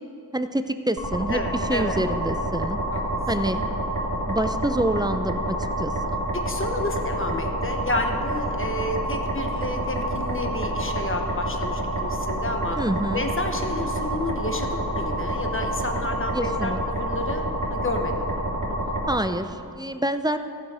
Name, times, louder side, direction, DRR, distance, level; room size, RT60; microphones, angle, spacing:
voice 1, 0.3-1.4 1.7-2.8 3.3-3.6 4.3-6.2 12.8-13.3 16.3-16.8 19.1-20.4, right 1 dB, 10° right, 9 dB, 0.4 m, -27 dB
sound 1, 1.0-19.1, right 1 dB, 50° right, 2.3 m, -28 dB
voice 2, 1.3-2.0 2.9-3.0 6.3-12.8 13.1-18.1 18.7-18.8, left 2 dB, 30° left, 4 dB, 1.1 m, -30 dB
15.0 x 7.4 x 4.9 m, 2.6 s
wide cardioid pair, 85°, 39 cm